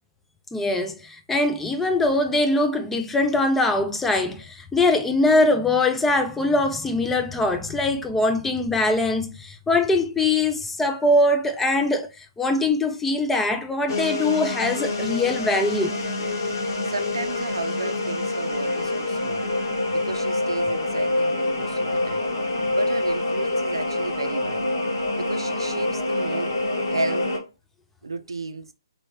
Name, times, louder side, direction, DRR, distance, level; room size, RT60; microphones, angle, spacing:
voice 1, 0.5-16.0, left 2 dB, 5° left, 0.3 m, -22 dB
sound 1, 13.9-27.4, left 2 dB, 55° left, 1.0 m, -26 dB
voice 2, 16.9-19.5 19.9-22.3 22.7-24.7 25.2-26.6 26.9-27.3 28.0-28.7, right 3 dB, 85° right, 0.5 m, -33 dB
3.1 x 2.7 x 2.9 m
hypercardioid pair, 140°, 2 cm